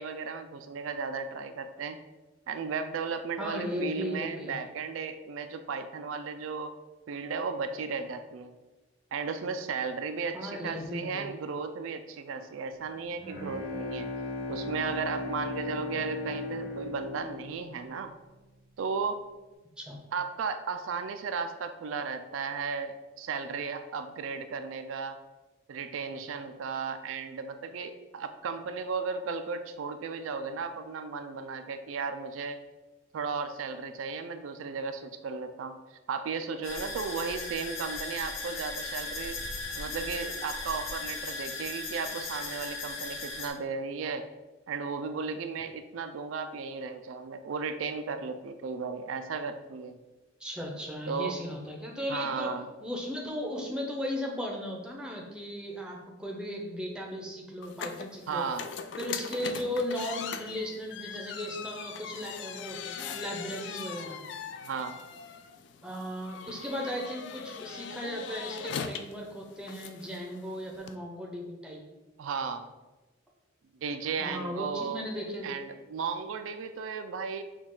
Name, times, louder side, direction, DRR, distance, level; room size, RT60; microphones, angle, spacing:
voice 1, 0.0-2.0 2.5-6.7 7.1-8.5 9.1-14.1 14.5-18.1 18.8-19.2 20.1-25.2 25.7-32.6 33.1-39.4 39.8-44.2 44.7-50.0 51.1-51.4 52.1-52.7 58.3-58.7 64.6-65.0 72.2-72.7 73.8-75.0 75.4-77.4, right 5 dB, 80° right, 8 dB, 0.4 m, -35 dB
voice 2, 3.4-4.6 10.3-11.3 19.8-20.0 50.4-52.5 52.8-58.4 59.0-64.2 65.8-71.8 74.2-75.5, equal, 5° right, -1 dB, 0.6 m, -36 dB
Bowed string instrument, 12.9-18.4, left 3 dB, 35° left, 1.0 m, -37 dB
sound 1, 36.6-43.5, left 3 dB, 90° left, 0.8 m, -37 dB
sound 2, 57.6-71.0, left 7 dB, 60° left, 0.3 m, -41 dB
6.1 x 2.3 x 3.7 m, 1.1 s
head